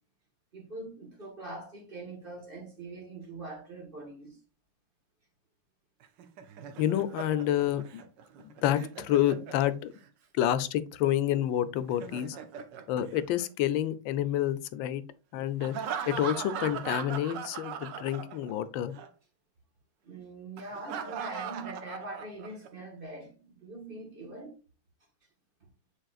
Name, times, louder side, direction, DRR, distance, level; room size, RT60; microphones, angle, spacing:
voice 1, 0.5-4.4 20.0-24.5, right 2 dB, 30° right, 1.5 m, -43 dB
Laughter, 6.0-10.1 11.8-13.9 15.6-18.7 18.9-19.1 20.6-22.7, right 8 dB, 70° right, 1.4 m, -40 dB
voice 2, 6.8-8.0 8.4-9.9 10.3-12.4 12.9-15.0 15.3-15.8 16.1-18.9, left 12 dB, 85° left, 1.3 m, -28 dB
9.0 x 4.6 x 2.4 m
omnidirectional pair, 2.1 m